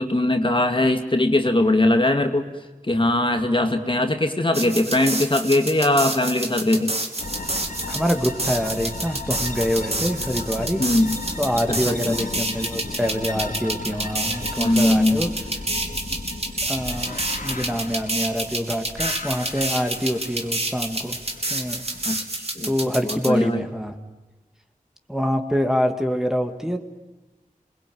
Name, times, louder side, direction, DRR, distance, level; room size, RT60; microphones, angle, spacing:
voice 1, 0.0-2.5 2.8-6.9 10.8-11.2 11.7-12.2 14.6-15.3 22.1-22.7 23.0-23.6, left 1 dB, 35° left, 6 dB, 2.2 m, -21 dB
sound 1, 4.5-23.3, right 2 dB, 45° right, 3.1 m, -29 dB
sound 2, 7.2-22.2, left 2 dB, 70° left, 2.5 m, -35 dB
voice 2, 7.9-10.8 11.4-15.3 16.7-21.2 21.5-21.8 22.6-24.0 25.1-26.8, equal, 5° right, 5 dB, 2.3 m, -25 dB
27.5 x 22.0 x 9.5 m, 1.1 s
wide cardioid pair, 50°, 15 cm